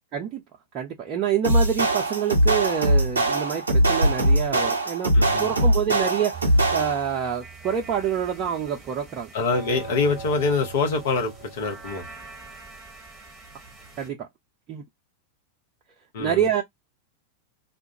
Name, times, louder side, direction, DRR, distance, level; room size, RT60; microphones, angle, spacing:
voice 1, 0.1-0.4 0.7-9.3 14.0-14.3 14.7-14.8 16.2-16.6, right 8 dB, 35° right, 0.6 m, -27 dB
sound 1, 1.4-7.2, right 1 dB, 75° right, 0.7 m, -21 dB
voice 2, 5.1-5.5 9.3-12.1 16.1-16.4, left 4 dB, 55° left, 0.9 m, -25 dB
sound 2, 6.3-14.1, right 4 dB, ahead, 1.1 m, -41 dB
2.4 x 2.2 x 2.7 m
figure-of-eight pair, 90°, 0 cm